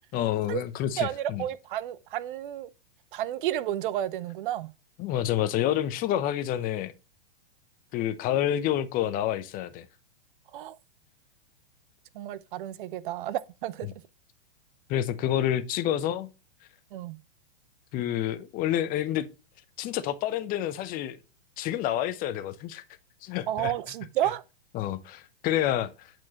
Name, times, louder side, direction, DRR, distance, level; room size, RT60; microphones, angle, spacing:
voice 1, 0.1-1.4 5.0-6.9 7.9-9.9 14.9-16.3 17.9-19.3 19.8-21.2 21.6-22.8 23.2-23.7 24.7-26.1, left 11 dB, 30° left, 0.7 m, -28 dB
voice 2, 1.0-2.7 3.1-4.7 10.5-10.8 12.1-13.9 16.9-17.2 23.5-24.4, right 12 dB, 60° right, 0.6 m, -31 dB
8.4 x 4.5 x 2.9 m
hypercardioid pair, 125°, 30 cm